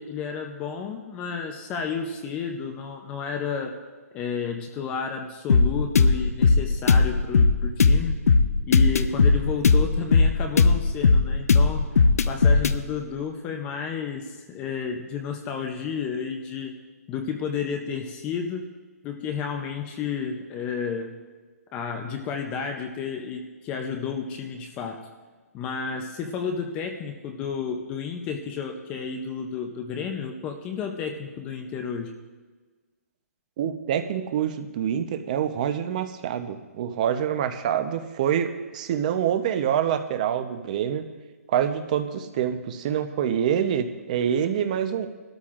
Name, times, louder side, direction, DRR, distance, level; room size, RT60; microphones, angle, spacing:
voice 1, 0.0-3.8 4.1-8.2 8.7-11.9 12.2-16.7 17.1-18.7 19.0-21.1 21.7-25.1 25.5-32.1, left 6 dB, 15° left, 4 dB, 0.5 m, -31 dB
sound 1, 5.5-12.8, left 4 dB, 70° left, 0.7 m, -18 dB
voice 2, 33.6-41.0 41.5-45.1, right 9 dB, 30° right, 8 dB, 0.8 m, -26 dB
20.5 x 13.0 x 2.5 m, 1.3 s
hypercardioid pair, 165°, 8 cm